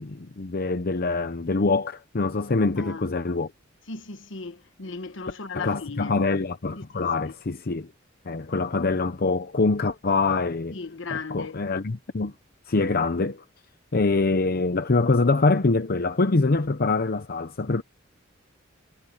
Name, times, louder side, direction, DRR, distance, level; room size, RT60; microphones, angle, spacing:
voice 1, 0.0-3.5 5.5-7.9 8.3-10.8 11.1-12.3 12.7-13.4 13.9-17.8, left 3 dB, 50° left, 0.8 m, -24 dB
voice 2, 2.8-3.1 3.9-6.2 6.8-7.1 10.7-11.6, left 4 dB, 70° left, 1.3 m, -37 dB
head